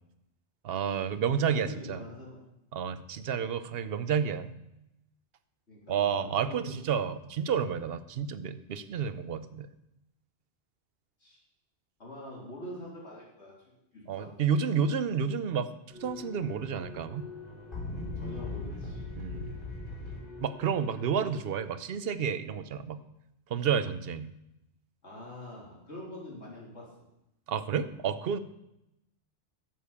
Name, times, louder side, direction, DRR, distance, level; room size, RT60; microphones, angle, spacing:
voice 1, 0.6-2.0 2.7-4.5 5.9-9.7 14.1-15.7 16.0-17.3 19.2-19.5 20.4-23.0 23.5-24.3 27.5-28.4, right 7 dB, 65° right, 13 dB, 0.9 m, -30 dB
voice 2, 1.5-2.4 5.7-6.8 11.2-11.4 12.0-13.5 13.9-14.4 18.2-19.1 25.0-26.9, left 1 dB, 80° left, -4 dB, 3.7 m, -45 dB
sound 1, 15.9-21.3, left 2 dB, 45° left, 5.2 m, -40 dB
11.0 x 7.5 x 7.0 m, 0.87 s
omnidirectional pair, 1.1 m